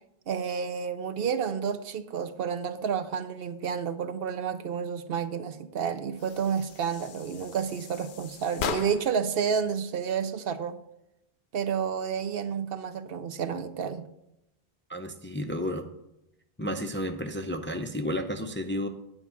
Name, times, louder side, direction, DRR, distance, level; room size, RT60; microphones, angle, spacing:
voice 1, 0.3-10.8 11.5-14.0, right 7 dB, 70° right, 10 dB, 0.8 m, -30 dB
sound 1, 6.2-9.3, left 8 dB, 60° left, 0.7 m, -38 dB
voice 2, 14.9-15.9 16.6-18.9, equal, 15° left, 6 dB, 0.5 m, -32 dB
9.8 x 4.7 x 7.0 m, 0.85 s
omnidirectional pair, 1.0 m